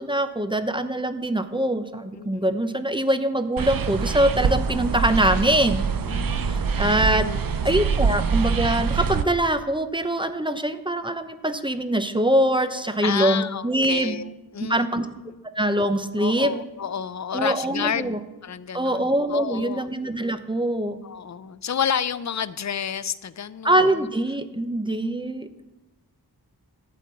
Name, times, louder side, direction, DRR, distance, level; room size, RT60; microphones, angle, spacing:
voice 1, 0.0-5.8 6.5-7.3 7.6-14.2 14.6-15.1 15.6-16.6 17.3-18.2 18.7-21.0 23.6-25.5, right 1 dB, 10° right, 9 dB, 0.7 m, -23 dB
voice 2, 2.2-2.6 6.1-7.4 13.0-15.0 16.2-18.2 18.4-19.9 21.0-24.1 25.0-25.1, left 8 dB, 45° left, 15 dB, 0.5 m, -30 dB
sound 1, 3.6-9.2, right 6 dB, 60° right, 0.6 m, -24 dB
12.0 x 4.5 x 8.3 m, 1.1 s
wide cardioid pair, 45°, 40 cm